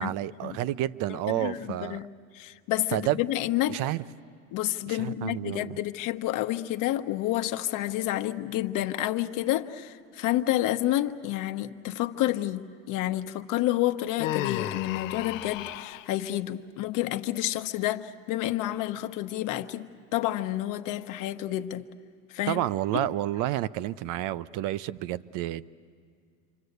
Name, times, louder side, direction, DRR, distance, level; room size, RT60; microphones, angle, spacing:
voice 1, 0.0-2.0 2.9-3.2 3.7-4.0 4.9-5.8 22.5-25.7, right 14 dB, 55° right, 17 dB, 0.7 m, -30 dB
voice 2, 1.3-3.8 4.5-21.9 22.3-22.6 22.9-23.1, left 14 dB, 55° left, 8 dB, 1.1 m, -29 dB
Human voice, 14.2-16.1, left 14 dB, 80° left, 0.8 m, -33 dB
27.5 x 25.0 x 8.1 m, 2.2 s
supercardioid pair, 120°, 39 cm